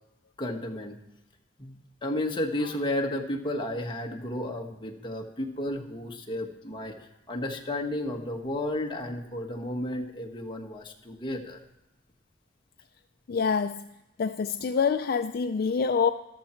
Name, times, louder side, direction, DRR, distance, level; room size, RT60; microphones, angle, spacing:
voice 1, 0.4-1.0 1.6-7.0 7.3-11.6, left 1 dB, 25° left, 1 dB, 1.3 m, -32 dB
voice 2, 13.3-13.9 14.2-16.1, left 5 dB, 50° left, 9 dB, 0.4 m, -26 dB
13.5 x 12.5 x 4.4 m, 0.91 s
head